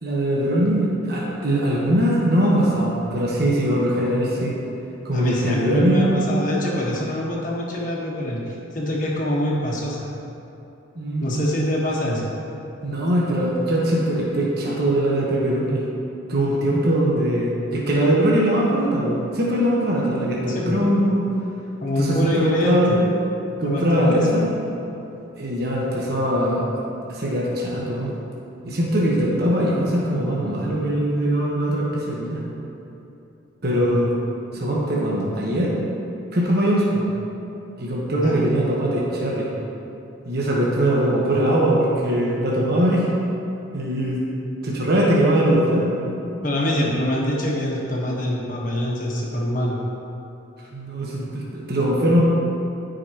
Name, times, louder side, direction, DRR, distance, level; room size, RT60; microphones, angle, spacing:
voice 1, 0.0-4.6 5.0-6.2 10.9-11.7 12.8-15.8 16.3-21.2 22.0-23.0 23.6-24.5 25.4-26.6 27.1-28.1 28.6-32.4 33.6-34.1 34.5-35.8 36.3-37.0 37.8-39.5 40.2-43.1 43.7-44.2 44.6-45.9 46.8-46.9 50.7-52.2, right 1 dB, 50° right, -5 dB, 1.2 m, -21 dB
voice 2, 5.1-10.1 11.2-12.3 20.5-20.7 21.8-22.8 23.6-24.2 38.1-38.4 46.4-49.8, left 1 dB, 40° left, -4 dB, 1.4 m, -25 dB
14.5 x 5.2 x 3.0 m, 2.9 s
head